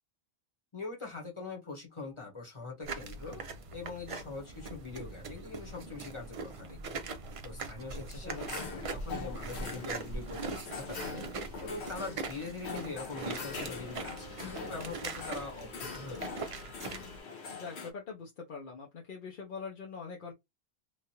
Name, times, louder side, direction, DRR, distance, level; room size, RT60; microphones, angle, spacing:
voice 1, 0.7-3.4 3.7-7.0 7.4-16.3, left 4 dB, 30° left, 1.0 m, -43 dB
sound 1, 2.8-17.2, right 3 dB, 45° right, 0.4 m, -41 dB
sound 2, 8.1-17.9, left 5 dB, 90° left, 1.1 m, -43 dB
voice 2, 8.1-8.5 17.5-20.3, left 5 dB, 55° left, 0.8 m, -43 dB
3.1 x 2.4 x 2.8 m
omnidirectional pair, 1.1 m